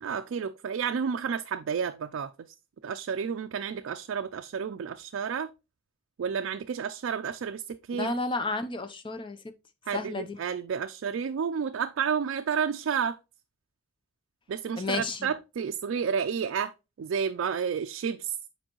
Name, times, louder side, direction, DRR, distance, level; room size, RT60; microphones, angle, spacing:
voice 1, 0.0-2.5 2.8-5.5 6.2-8.2 9.9-13.2 14.5-16.7 17.0-18.4, right 6 dB, 70° right, 0.3 m, -31 dB
voice 2, 7.9-9.4 9.9-10.4 14.8-15.3, left 3 dB, 25° left, 0.5 m, -32 dB
7.7 x 4.5 x 2.9 m
head